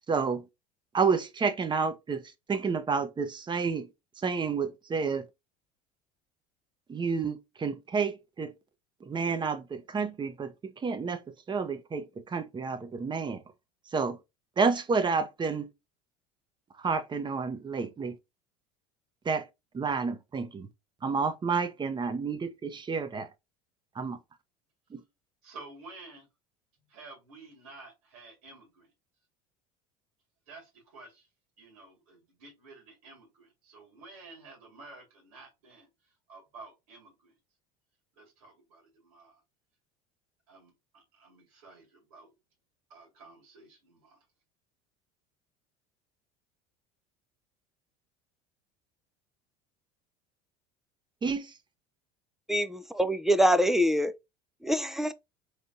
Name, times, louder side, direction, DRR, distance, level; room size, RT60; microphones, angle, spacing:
voice 1, 0.1-0.4 0.9-2.2 2.5-3.9 4.2-5.3 6.9-8.5 9.0-10.5 10.8-11.2 11.5-13.4 13.9-14.2 14.6-15.7 16.8-18.2 19.2-19.4 19.7-20.7 21.0-23.3 24.0-24.2 24.9-25.0 51.2-51.5, right 5 dB, 25° right, 0.9 m, -30 dB
voice 2, 25.4-26.3 26.9-28.9 30.5-31.3 31.6-37.4 38.1-39.4 40.5-42.3 42.9-44.3, right 3 dB, 90° right, 2.0 m, -51 dB
voice 3, 52.5-54.1 54.6-55.1, equal, ahead, 0.4 m, -25 dB
4.3 x 3.3 x 2.6 m
supercardioid pair, 95°, 18 cm